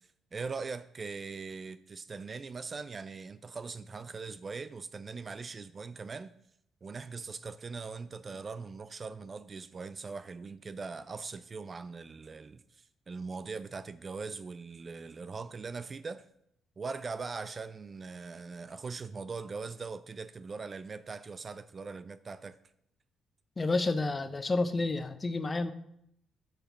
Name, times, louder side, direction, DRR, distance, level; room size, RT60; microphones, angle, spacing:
voice 1, 0.3-6.3 6.8-16.3 16.8-22.6, right 4 dB, 35° right, 0.4 m, -41 dB
voice 2, 23.6-25.7, left 3 dB, 30° left, 0.7 m, -30 dB
6.9 x 5.6 x 6.0 m
cardioid pair, 90°, 0 cm